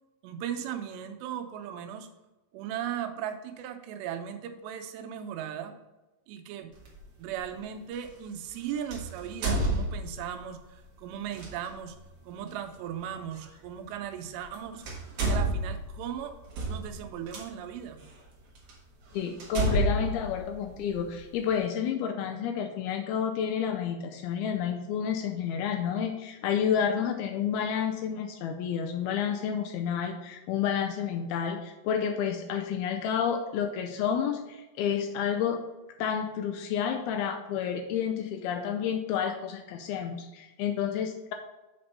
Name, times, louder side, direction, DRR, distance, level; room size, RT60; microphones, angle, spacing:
voice 1, 0.2-2.1 2.5-5.8 6.3-6.7 7.2-12.0 12.2-14.8 15.2-16.4 16.7-18.0, right 9 dB, 90° right, 7 dB, 2.9 m, -37 dB
sound 1, 6.8-7.0 8.9-10.4 11.3-11.5 13.4-13.5 14.4-14.5 14.8-17.4 18.1-18.2 18.7-18.8 19.4-21.2, right 1 dB, 60° right, 1.4 m, -29 dB
voice 2, 19.1-35.6 36.0-41.3, left 8 dB, 80° left, 5 dB, 2.3 m, -30 dB
7.8 x 4.3 x 5.4 m, 1.1 s
omnidirectional pair, 4.8 m